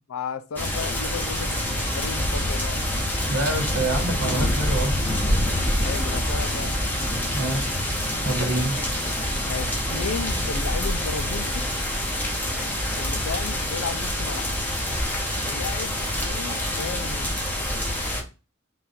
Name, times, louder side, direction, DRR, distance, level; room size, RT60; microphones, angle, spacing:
voice 1, 0.1-2.8 5.8-6.8 9.4-11.7 13.0-14.5 15.4-17.3, left 6 dB, 90° left, 0.4 m, -34 dB
sound 1, 0.6-18.2, left 1 dB, 10° left, 0.9 m, -26 dB
voice 2, 3.3-5.0 7.3-7.7 8.2-8.7, right 2 dB, 75° right, 1.2 m, -26 dB
3.9 x 2.4 x 4.2 m
head